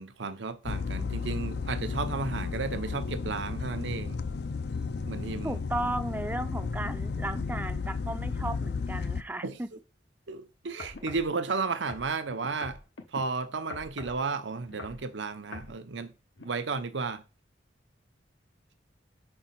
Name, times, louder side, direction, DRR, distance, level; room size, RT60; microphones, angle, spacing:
voice 1, 0.0-4.2 5.1-5.6 9.4-9.6 10.3-12.8 13.1-16.1 16.4-17.2, right 4 dB, 85° right, 0.8 m, -33 dB
sound 1, 0.6-9.2, left 4 dB, 60° left, 0.4 m, -33 dB
voice 2, 5.4-9.7, right 1 dB, 10° right, 0.4 m, -35 dB
sound 2, 10.8-11.3 11.9-13.2 13.7-14.2 14.7-15.0 15.5-15.7 16.4-16.5, left 3 dB, 90° left, 1.1 m, -43 dB
5.3 x 4.3 x 5.8 m
head